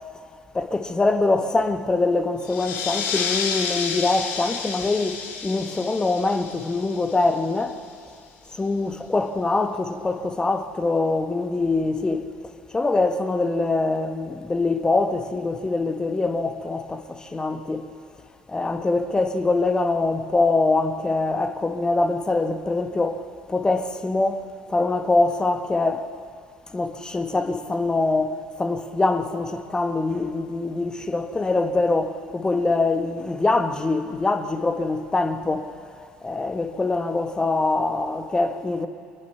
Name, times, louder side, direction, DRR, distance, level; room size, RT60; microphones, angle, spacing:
voice 1, 0.5-7.8 8.5-12.3 12.7-17.9 18.5-23.2 23.5-26.1 26.7-35.7 36.2-38.9, left 3 dB, 20° left, 1.5 m, -24 dB
sound 1, 2.4-7.6, left 6 dB, 55° left, 2.4 m, -30 dB
24.0 x 20.0 x 5.9 m
figure-of-eight pair, 60°, 4 cm